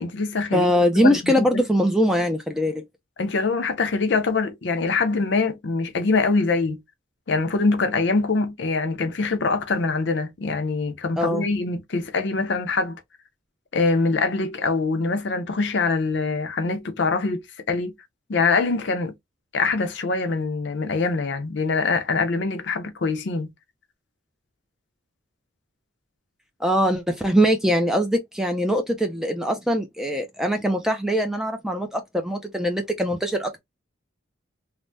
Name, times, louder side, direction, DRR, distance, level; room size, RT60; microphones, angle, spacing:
voice 1, 0.0-0.7 1.0-1.6 3.2-6.8 7.3-13.0 13.7-17.9 18.3-19.1 19.5-23.5, left 3 dB, 55° left, 0.5 m, -24 dB
voice 2, 0.5-2.8 11.2-11.4 26.6-33.6, equal, ahead, 0.3 m, -22 dB
3.3 x 2.0 x 2.5 m
head